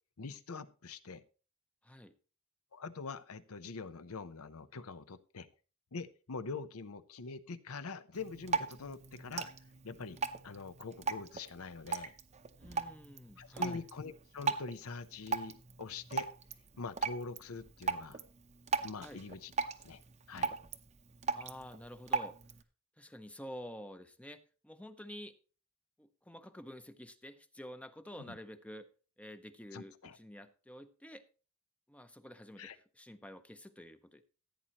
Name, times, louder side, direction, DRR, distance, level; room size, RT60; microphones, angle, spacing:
voice 1, 0.2-1.2 2.7-5.5 5.9-9.5 9.8-12.1 13.4-16.3 16.8-18.2 18.8-19.5 19.8-20.0 20.3-20.5 28.3-28.4 29.7-30.2 32.6-32.8, left 4 dB, 75° left, 13 dB, 0.7 m, -44 dB
voice 2, 1.8-2.1 12.6-13.8 19.0-19.2 21.3-22.4 23.0-25.4 26.0-28.9 29.2-31.2 31.9-34.2, equal, 5° left, 10 dB, 0.6 m, -49 dB
Drip, 8.1-22.6, right 5 dB, 30° right, 0.7 m, -39 dB
15.5 x 8.8 x 3.0 m, 0.35 s
head